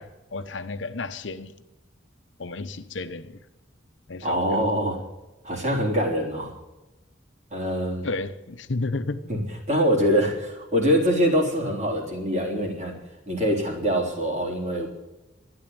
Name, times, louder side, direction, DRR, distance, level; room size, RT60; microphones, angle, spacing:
voice 1, 0.0-1.5 2.4-3.4 4.1-4.7 8.0-9.3, left 3 dB, 70° left, 0.9 m, -32 dB
voice 2, 4.2-5.0 5.4-6.5 7.5-8.1 9.3-9.4 9.7-13.0 13.3-14.9, equal, 40° right, 3.7 m, -24 dB
12.5 x 10.0 x 9.5 m
head